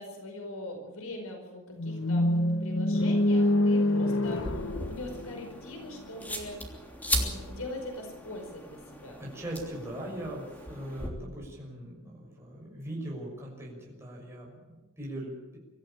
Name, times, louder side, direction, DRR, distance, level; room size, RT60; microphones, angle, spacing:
voice 1, 0.0-6.6 7.1-9.2, left 1 dB, 80° left, 3 dB, 5.1 m, -42 dB
sound 1, 1.8-5.9, left 1 dB, 65° left, 1.1 m, -26 dB
sound 2, 4.2-11.1, equal, 10° left, 3.2 m, -37 dB
voice 2, 9.2-15.6, right 1 dB, 10° right, -3 dB, 6.2 m, -40 dB
24.5 x 14.0 x 8.9 m, 1.2 s
head